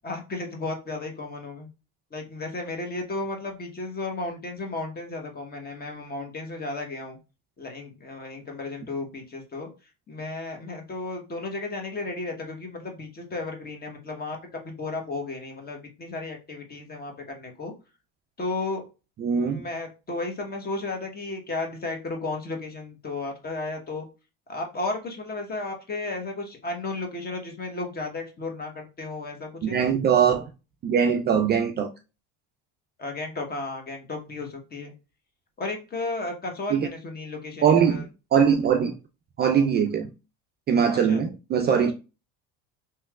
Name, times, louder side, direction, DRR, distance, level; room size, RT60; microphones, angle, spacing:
voice 1, 0.0-1.7 2.1-7.2 7.6-9.7 10.1-17.7 18.4-18.8 19.3-24.1 24.5-29.9 33.0-34.9 35.6-38.0 40.9-41.2 41.7-41.9, left 2 dB, 25° left, 1.0 m, -34 dB
voice 2, 19.2-19.6 29.6-30.4 30.8-31.9 36.7-36.9 37.6-38.9 39.4-40.1 40.7-41.9, right 7 dB, 30° right, 0.4 m, -21 dB
3.0 x 2.9 x 2.3 m
supercardioid pair, 105°, 35 cm